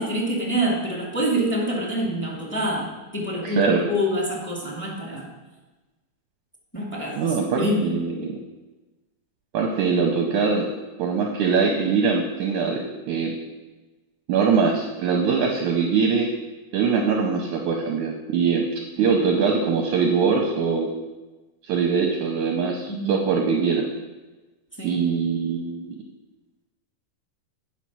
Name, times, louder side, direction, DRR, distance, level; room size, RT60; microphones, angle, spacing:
voice 1, 0.0-5.3 6.7-7.2 7.6-8.0 19.0-19.1 22.9-23.2 24.8-25.0, equal, 5° left, -3 dB, 1.6 m, -26 dB
voice 2, 3.4-3.8 7.2-8.4 9.5-10.7 11.0-13.3 14.3-16.3 16.7-18.6 19.0-20.9 21.6-23.9 24.8-26.0, right 5 dB, 75° right, 2 dB, 1.9 m, -22 dB
9.5 x 5.8 x 6.2 m, 1.2 s
omnidirectional pair, 4.2 m